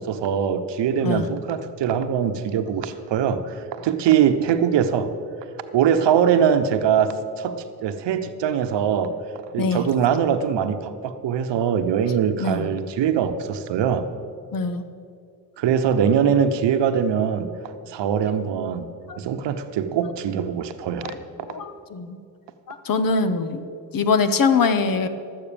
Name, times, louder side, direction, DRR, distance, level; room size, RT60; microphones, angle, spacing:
voice 1, 0.0-5.1 5.7-9.2 9.5-14.1 15.6-17.5 17.9-18.9 19.2-21.1, right 8 dB, 65° right, 9 dB, 1.0 m, -22 dB
voice 2, 9.6-9.9 12.4-12.7 14.5-14.9 19.1-19.2 21.0-21.2 21.4-22.2 22.7-23.6 23.9-25.1, left 4 dB, 45° left, 11 dB, 1.1 m, -23 dB
11.5 x 8.7 x 7.0 m, 2.4 s
supercardioid pair, 65°, 45 cm